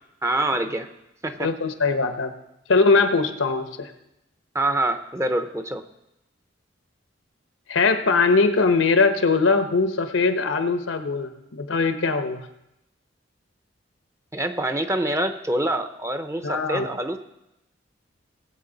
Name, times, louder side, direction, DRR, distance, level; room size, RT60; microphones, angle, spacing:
voice 1, 0.2-0.9 1.2-1.5 4.5-5.8 14.3-17.2, right 1 dB, 15° right, 8 dB, 0.6 m, -25 dB
voice 2, 1.4-2.3 2.7-3.9 7.7-12.4 16.4-16.8, left 4 dB, 85° left, 8 dB, 1.0 m, -21 dB
19.5 x 7.9 x 3.9 m, 0.87 s
head